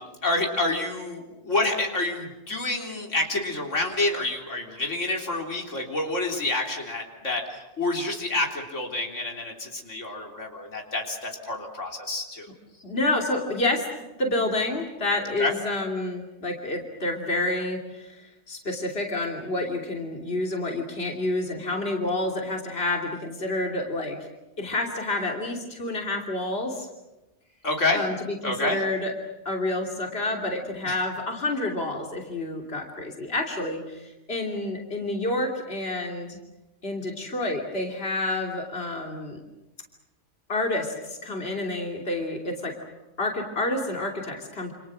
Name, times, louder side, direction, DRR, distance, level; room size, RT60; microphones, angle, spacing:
voice 1, 0.2-12.5 15.4-15.5 27.6-28.1 28.4-28.8 30.8-31.0, left 2 dB, 85° left, 1 dB, 3.9 m, -28 dB
voice 2, 12.8-13.9 14.2-24.3 24.6-26.9 27.9-29.1 29.4-36.4 36.8-39.4 40.5-42.8 43.2-44.7, left 2 dB, 55° left, 1 dB, 3.3 m, -29 dB
28.5 x 27.5 x 6.5 m, 1.0 s
omnidirectional pair, 1.2 m